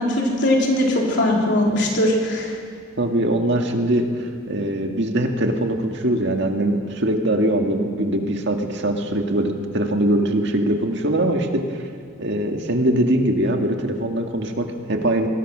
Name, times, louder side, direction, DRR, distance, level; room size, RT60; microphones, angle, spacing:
voice 1, 0.0-2.6, left 1 dB, 60° left, -1 dB, 3.9 m, -20 dB
voice 2, 3.0-11.8 12.2-15.3, right 1 dB, 60° right, 3 dB, 2.0 m, -22 dB
22.5 x 21.0 x 6.3 m, 2.1 s
head